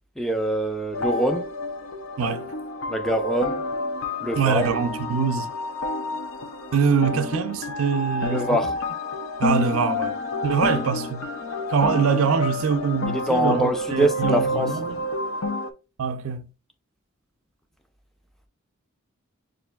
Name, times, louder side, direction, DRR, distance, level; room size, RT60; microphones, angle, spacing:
voice 1, 0.2-1.5 2.9-3.6 4.2-4.7 8.2-8.7 13.1-14.7, right 1 dB, ahead, 0.5 m, -24 dB
sound 1, 0.9-15.7, left 2 dB, 75° left, 0.5 m, -29 dB
voice 2, 2.2-2.5 4.4-5.5 6.7-8.5 9.4-11.3 11.7-15.0 16.0-16.5, right 6 dB, 90° right, 0.4 m, -24 dB
6.3 x 2.5 x 2.2 m
head